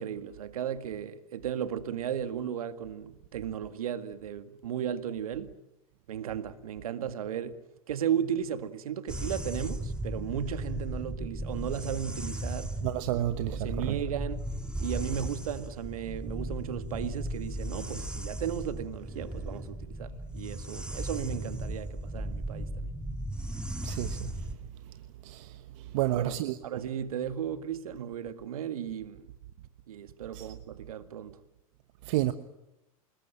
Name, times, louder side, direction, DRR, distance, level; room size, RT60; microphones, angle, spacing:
voice 1, 0.0-5.5 6.1-7.6 7.9-12.8 13.1-13.2 13.5-14.4 14.8-22.9 26.0-26.4 26.6-29.3 29.9-31.4, right 9 dB, 75° right, 2.0 m, -35 dB
sound 1, 9.1-24.5, right 1 dB, 5° right, 2.3 m, -36 dB
voice 2, 12.8-13.9 23.8-24.3 25.2-26.6 30.3-30.5 32.0-32.3, right 14 dB, 60° right, 1.2 m, -31 dB
28.5 x 20.5 x 9.0 m
hypercardioid pair, 95°, 18 cm